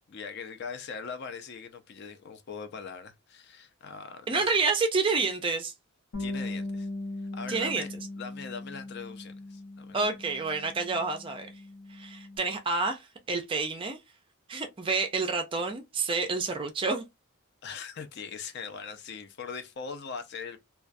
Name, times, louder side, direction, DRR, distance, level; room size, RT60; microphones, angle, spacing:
voice 1, 0.1-4.4 6.2-6.9 7.3-7.9 8.2-10.0 17.6-20.6, left 5 dB, 50° left, 0.4 m, -41 dB
voice 2, 4.3-5.7 7.5-7.9 9.9-11.5 11.9-14.0 14.5-17.0, right 4 dB, 25° right, 0.3 m, -29 dB
Bass guitar, 6.1-12.4, left 2 dB, 65° left, 0.9 m, -39 dB
2.3 x 2.2 x 2.5 m
head